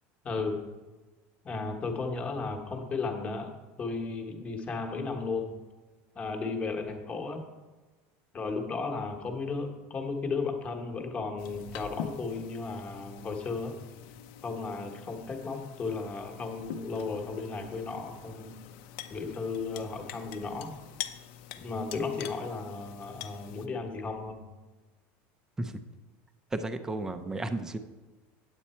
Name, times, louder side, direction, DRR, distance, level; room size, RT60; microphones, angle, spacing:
voice 1, 0.2-0.6 1.4-3.5 3.8-5.5 6.1-7.4 8.3-13.7 14.4-18.5 19.1-20.7 21.6-24.5, left 4 dB, 20° left, 4 dB, 1.1 m, -34 dB
sound 1, 11.4-23.7, left 10 dB, 60° left, 0.6 m, -45 dB
voice 2, 26.5-27.8, right 2 dB, 10° right, 9 dB, 0.5 m, -33 dB
9.0 x 8.4 x 4.3 m, 1.2 s
cardioid pair, 165°, 6 cm